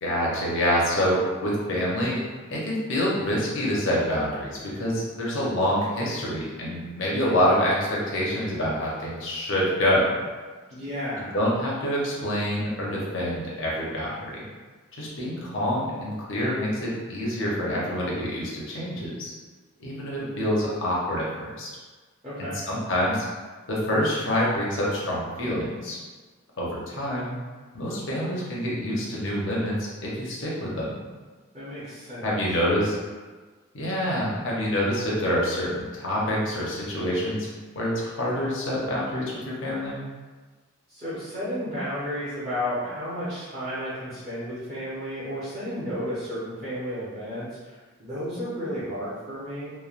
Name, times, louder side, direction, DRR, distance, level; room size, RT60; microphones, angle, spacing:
voice 1, 0.0-2.2 2.5-10.1 11.3-14.4 14.9-19.3 19.8-21.7 22.4-23.2 23.7-26.0 26.6-27.3 27.7-29.8 30.0-30.9 32.2-33.0 33.7-37.5 37.7-40.0, equal, 60° left, -5 dB, 0.7 m, -26 dB
voice 2, 10.7-11.3 22.2-22.6 31.5-32.4 40.9-47.7 48.0-49.7, equal, 30° right, -13 dB, 0.8 m, -32 dB
3.1 x 2.1 x 2.4 m, 1.4 s
head